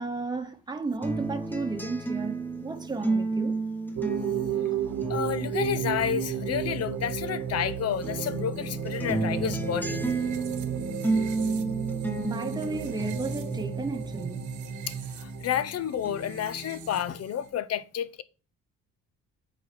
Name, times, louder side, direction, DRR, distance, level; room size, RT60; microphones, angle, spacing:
voice 1, 0.0-3.6 12.2-14.6, right 3 dB, 15° right, 1.0 m, -33 dB
sound 1, 1.0-7.7 8.0-15.7 16.1-17.0, right 2 dB, 5° left, 1.2 m, -33 dB
sound 2, 4.0-17.5, right 9 dB, 75° right, 1.1 m, -34 dB
voice 2, 5.1-10.0 14.9-18.2, left 9 dB, 55° left, 0.7 m, -30 dB
8.4 x 4.1 x 4.3 m
cardioid pair, 90°, 30 cm